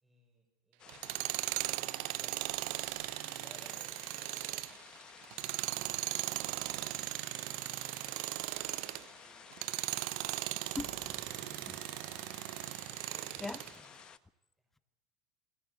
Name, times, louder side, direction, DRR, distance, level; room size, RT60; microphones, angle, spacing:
voice 1, 0.0-2.5 3.3-4.1 4.3-4.9 7.4-7.8 8.9-9.5 13.1-14.0 14.6-14.8, equal, 10° right, -1 dB, 6.0 m, -63 dB
sound 1, 0.8-14.2, left 8 dB, 35° left, 1.2 m, -54 dB
Tools, 0.9-9.1 9.5-13.7, right 22 dB, 60° right, 0.7 m, -38 dB
voice 2, 10.8-12.1 12.9-13.1 13.4-13.6, left 3 dB, 10° left, 14 dB, 1.0 m, -44 dB
25.0 x 17.5 x 8.2 m, 1.0 s
hypercardioid pair, 90°, 2 cm